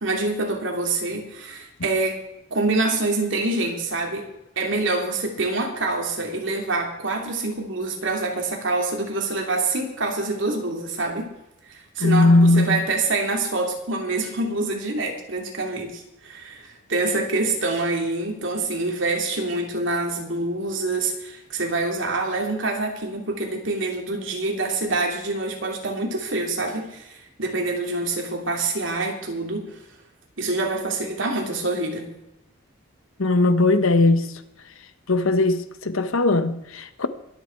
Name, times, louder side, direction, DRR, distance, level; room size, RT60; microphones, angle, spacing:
voice 1, 0.0-2.2 2.5-4.3 4.6-11.3 11.7-29.8 30.4-32.1, right 2 dB, 65° right, 2.9 m, -26 dB
voice 2, 12.0-12.8 33.2-34.3 35.1-37.1, left 2 dB, 85° left, 1.1 m, -19 dB
22.5 x 8.3 x 4.6 m
head